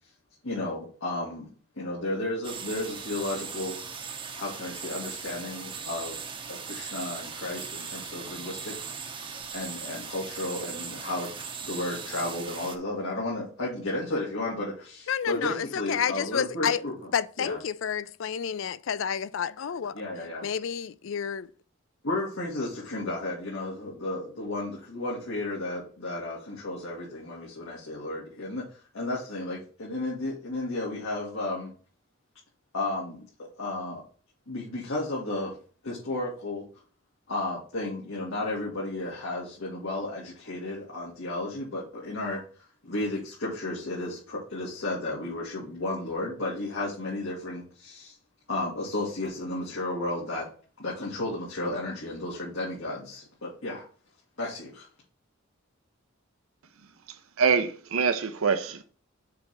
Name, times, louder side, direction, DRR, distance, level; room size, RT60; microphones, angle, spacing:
voice 1, 0.4-1.5 1.8-3.8 4.3-6.2 6.5-8.9 9.5-11.3 11.6-16.9 17.4-17.6 19.9-20.5 22.0-28.6 28.9-31.7 32.7-34.0 34.5-35.6 35.8-36.6 37.3-42.4 42.8-48.1 48.5-50.5 50.8-53.9 54.4-54.9, left 2 dB, 90° left, 2.1 m, -33 dB
sound 1, 2.4-12.8, right 6 dB, 25° right, 0.7 m, -39 dB
voice 2, 15.1-16.8 17.1-20.0 20.4-21.5, left 8 dB, 65° left, 0.4 m, -30 dB
voice 3, 57.1-58.8, right 6 dB, 90° right, 0.6 m, -25 dB
6.8 x 3.4 x 6.1 m
head